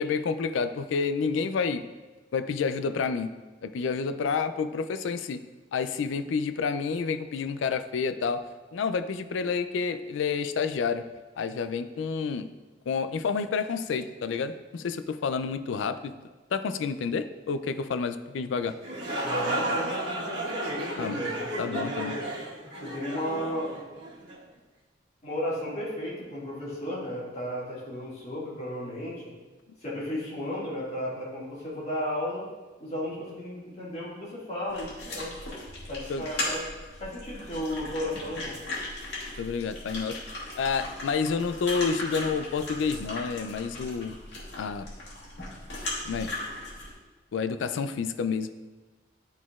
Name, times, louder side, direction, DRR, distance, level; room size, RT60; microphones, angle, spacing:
voice 1, 0.0-1.8 2.3-3.3 3.6-5.4 5.7-8.5 8.7-11.0 11.4-12.5 12.9-16.1 16.5-18.7 21.0-21.2 21.6-22.1 36.1-36.3 39.4-40.2 40.6-44.2 44.6-44.9 46.0-46.3 47.3-48.5, left 5 dB, 80° left, 11 dB, 0.4 m, -29 dB
sound 1, 18.7-24.4, right 1 dB, 65° right, 1.4 m, -33 dB
voice 2, 19.2-22.2 22.8-23.8 25.2-29.2 29.8-32.5 32.8-35.3 35.9-36.6 37.0-38.6, left 1 dB, 35° left, -7 dB, 2.0 m, -34 dB
sound 2, 34.7-46.9, left 2 dB, 60° left, 1.9 m, -37 dB
11.0 x 4.1 x 2.4 m, 1.2 s
head